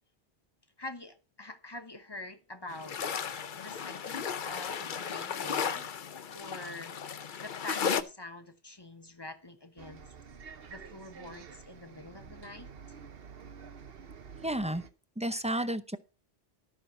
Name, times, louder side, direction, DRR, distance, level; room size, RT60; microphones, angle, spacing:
voice 1, 0.8-3.0 3.5-5.9 6.3-6.9 7.4-10.1 10.7-13.0, left 2 dB, 25° left, 1.0 m, -46 dB
sound 1, 2.7-8.0, left 7 dB, 55° left, 0.8 m, -35 dB
Bus, 9.8-14.9, right 6 dB, 65° right, 1.1 m, -49 dB
voice 2, 14.4-14.8 15.2-16.0, right 1 dB, 10° right, 0.5 m, -31 dB
13.0 x 6.1 x 5.4 m
omnidirectional pair, 1.1 m